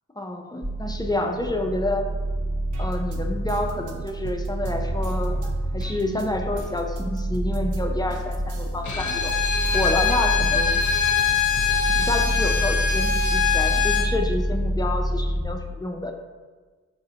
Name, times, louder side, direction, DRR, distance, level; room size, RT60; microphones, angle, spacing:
voice 1, 0.2-2.1 2.8-9.3 9.7-10.8 12.0-16.1, left 1 dB, 15° left, 3 dB, 0.3 m, -28 dB
sound 1, 0.6-15.4, right 1 dB, 20° right, 0.8 m, -28 dB
sound 2, 2.7-7.8 8.1-13.3 13.8-14.7, right 2 dB, 80° right, 0.6 m, -39 dB
Bowed string instrument, 8.8-14.1, left 7 dB, 75° left, 0.5 m, -23 dB
4.8 x 4.1 x 2.7 m, 1.4 s
wide cardioid pair, 120°, 30 cm